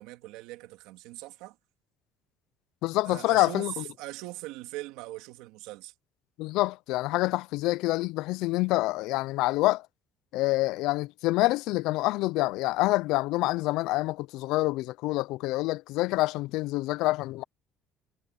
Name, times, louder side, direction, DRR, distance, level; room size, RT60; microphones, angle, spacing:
voice 1, 0.0-1.6 3.0-5.9, right 18 dB, 85° right, 3.0 m, -41 dB
voice 2, 2.8-3.8 6.4-9.9 10.3-17.4, left 19 dB, 70° left, 0.3 m, -27 dB
cardioid pair, 155°, 0 cm